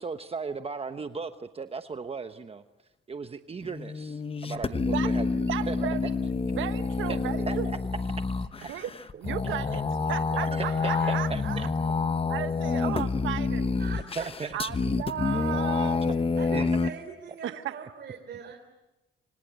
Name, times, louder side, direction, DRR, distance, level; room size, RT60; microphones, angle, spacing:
voice 1, 0.0-2.6 3.1-5.9 7.1-7.2 7.5-7.6 8.6-8.7 9.4-9.5 10.4-11.7 14.2-14.6 16.5-16.9 17.3-17.4, right 5 dB, 30° right, 8 dB, 1.1 m, -36 dB
sound 1, 3.6-16.9, left 4 dB, 30° left, 1.1 m, -28 dB
voice 2, 5.5-6.0 6.5-7.7 8.7-8.9 9.2-9.8 10.1-11.7 12.3-13.8 14.5-16.0 17.4-17.8, right 11 dB, 80° right, 10 dB, 1.4 m, -34 dB
voice 3, 10.6-11.2 13.8-14.3 15.3-15.5 16.4-18.6, right 6 dB, 55° right, 4 dB, 3.6 m, -42 dB
27.0 x 25.5 x 8.2 m, 1.0 s
cardioid pair, 90°, 20 cm